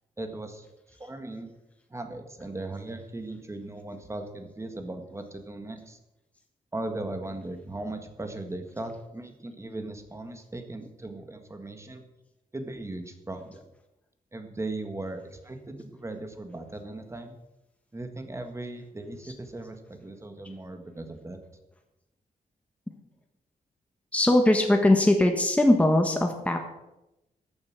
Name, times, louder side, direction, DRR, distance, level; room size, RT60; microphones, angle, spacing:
voice 1, 0.2-0.7 1.0-1.5 1.9-6.0 6.7-12.0 12.5-13.7 14.3-17.4 17.9-21.4, right 2 dB, 20° right, 6 dB, 1.7 m, -38 dB
voice 2, 24.1-26.6, left 1 dB, 10° left, 4 dB, 1.4 m, -21 dB
13.5 x 9.6 x 6.0 m, 0.93 s
wide cardioid pair, 135°, 15 cm